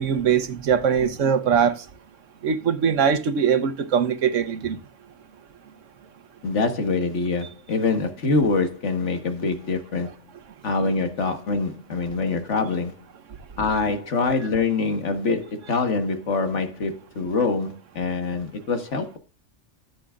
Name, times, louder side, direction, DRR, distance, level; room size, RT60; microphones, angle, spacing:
voice 1, 0.0-1.8 2.4-4.8, right 7 dB, 85° right, 1.3 m, -21 dB
voice 2, 6.4-10.1 10.6-13.0 13.6-19.2, left 3 dB, 70° left, 1.7 m, -25 dB
14.0 x 7.6 x 2.4 m
omnidirectional pair, 1.3 m